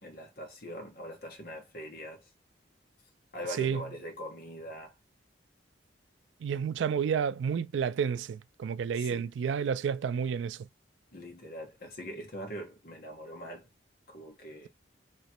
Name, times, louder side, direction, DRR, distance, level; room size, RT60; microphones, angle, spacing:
voice 1, 0.0-2.3 3.3-4.9 8.9-9.3 11.1-13.7 14.1-14.7, equal, 55° left, 1.2 m, -42 dB
voice 2, 6.4-10.7, right 7 dB, 85° right, 0.3 m, -30 dB
3.1 x 2.9 x 4.3 m
head